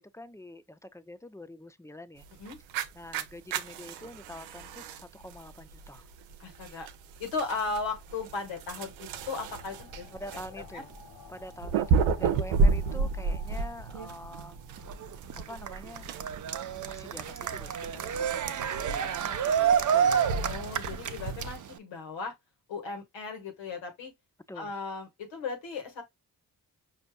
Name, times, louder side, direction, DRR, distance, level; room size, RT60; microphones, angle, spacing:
voice 1, 0.0-2.3 2.9-6.1 10.1-10.9 11.3-14.6 15.3-16.1 16.8-20.3 24.5-24.7, left 1 dB, 5° left, 0.4 m, -46 dB
sound 1, 2.2-21.6, right 4 dB, 85° right, 0.6 m, -33 dB
voice 2, 6.4-6.9 7.2-10.1 10.7-10.8 20.4-22.3 22.7-24.1 24.5-26.0, left 4 dB, 75° left, 1.5 m, -36 dB
sound 2, 9.1-15.5, left 4 dB, 60° left, 0.8 m, -53 dB
Cheering, 14.8-21.8, right 8 dB, 40° right, 0.6 m, -29 dB
5.1 x 2.7 x 2.2 m
hypercardioid pair, 40°, 45 cm